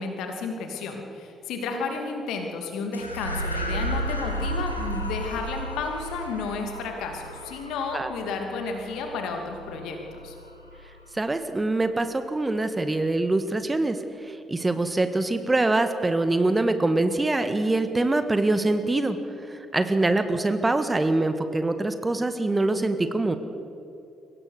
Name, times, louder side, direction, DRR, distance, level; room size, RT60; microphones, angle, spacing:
voice 1, 0.0-10.4, left 4 dB, 65° left, 4 dB, 2.6 m, -32 dB
sound 1, 2.9-11.6, right 1 dB, 90° left, 1.3 m, -34 dB
voice 2, 11.1-19.2 19.5-23.4, right 2 dB, 20° right, 9 dB, 1.6 m, -24 dB
23.0 x 18.0 x 6.7 m, 2.8 s
figure-of-eight pair, 40°, 0 cm